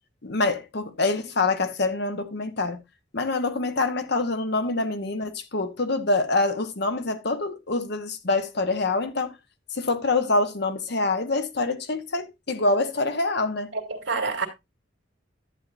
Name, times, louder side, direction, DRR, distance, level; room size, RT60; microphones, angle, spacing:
voice 1, 0.2-2.8 3.1-9.4 9.7-13.7, left 3 dB, 60° left, 1.1 m, -25 dB
voice 2, 13.7-14.5, right 4 dB, 75° right, 2.4 m, -28 dB
11.0 x 9.0 x 2.6 m
head